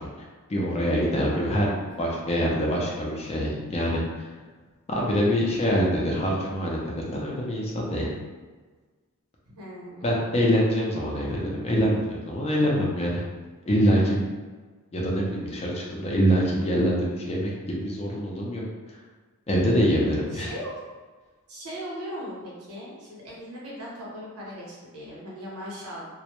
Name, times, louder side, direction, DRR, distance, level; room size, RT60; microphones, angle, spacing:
voice 1, 0.5-4.3 4.9-8.1 10.0-13.2 13.7-14.3 14.9-19.0 19.5-20.5, equal, 30° left, -3 dB, 0.4 m, -25 dB
voice 2, 1.9-2.2 9.6-10.2 20.3-20.8 21.5-26.1, equal, 80° right, -5 dB, 0.8 m, -38 dB
2.1 x 2.1 x 2.9 m, 1.4 s
head